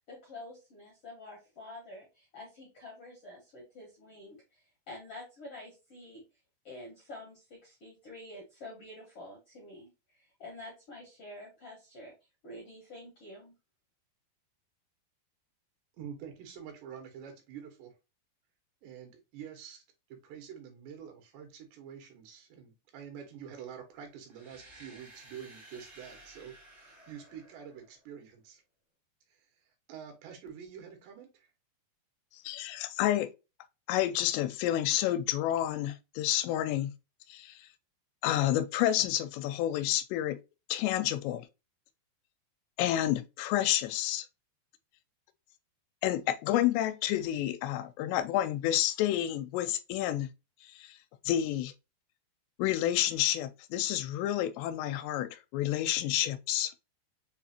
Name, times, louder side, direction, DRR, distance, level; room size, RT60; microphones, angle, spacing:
voice 1, 0.1-6.2 6.6-12.1 12.4-13.5, left 1 dB, 70° left, 1.3 m, -48 dB
voice 2, 16.0-17.9 18.8-19.8 20.1-28.6 29.3-29.5 29.9-31.5, right 8 dB, 80° right, 3.5 m, -47 dB
sound 1, 24.3-28.2, right 2 dB, 55° right, 0.4 m, -55 dB
voice 3, 32.4-33.3 33.9-36.9 37.3-37.7 38.2-40.4 40.7-41.5 42.8-44.3 46.0-50.3 50.6-51.0 51.3-51.7 52.6-56.7, left 13 dB, 85° left, 2.7 m, -29 dB
6.9 x 2.4 x 2.8 m
omnidirectional pair, 4.8 m